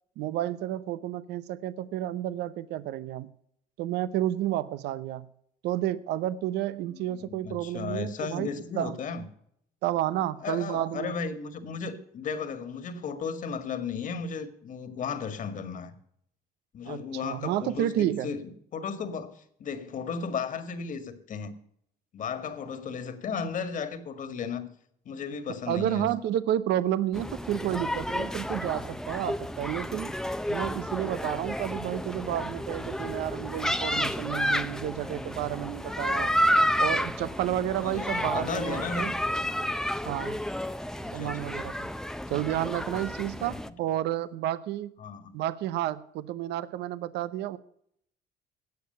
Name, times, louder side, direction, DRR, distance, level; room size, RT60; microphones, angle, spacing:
voice 1, 0.2-3.3 3.8-5.3 5.6-8.5 8.8-9.0 9.8-11.1 16.8-18.3 25.7-30.2 30.5-36.4 36.8-39.1 40.0-40.4 41.1-41.9 42.3-44.9 45.3-47.6, right 13 dB, 85° right, 0.8 m, -31 dB
voice 2, 6.9-9.2 10.4-15.9 16.7-21.5 22.1-24.7 25.1-26.1 37.8-39.2 41.0-41.5 43.3-43.5 45.0-45.4, left 5 dB, 50° left, 1.9 m, -35 dB
sound 1, 27.1-43.7, equal, 5° left, 0.6 m, -31 dB
17.5 x 6.7 x 6.9 m
cardioid pair, 110°, 17 cm